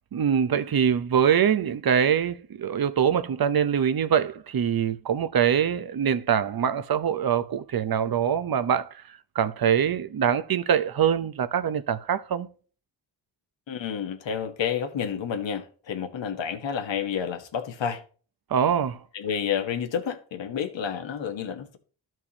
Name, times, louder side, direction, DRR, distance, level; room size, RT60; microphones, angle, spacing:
voice 1, 0.1-9.0 9.3-12.5 18.5-19.0, right 8 dB, 50° right, 0.8 m, -24 dB
voice 2, 13.7-18.0 19.1-21.8, left 7 dB, 70° left, 1.3 m, -30 dB
13.0 x 4.6 x 2.9 m
cardioid pair, 60°, 46 cm